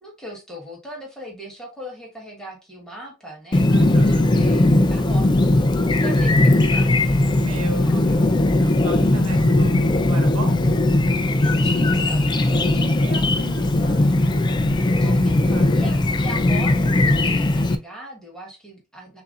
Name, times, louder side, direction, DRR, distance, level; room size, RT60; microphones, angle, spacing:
voice 1, 0.0-5.4 5.9-8.2 9.3-9.6 11.4-12.8 14.7-19.2, right 1 dB, 5° left, -2 dB, 1.2 m, -40 dB
Chirp tweet, 3.5-17.7, left 2 dB, 20° left, 0.3 m, -18 dB
voice 2, 3.7-4.3 7.3-8.3 8.6-10.8 12.7-14.4 15.0-15.2 15.5-15.8, right 2 dB, 85° right, 3 dB, 1.1 m, -35 dB
6.7 x 2.6 x 2.4 m, 0.29 s
head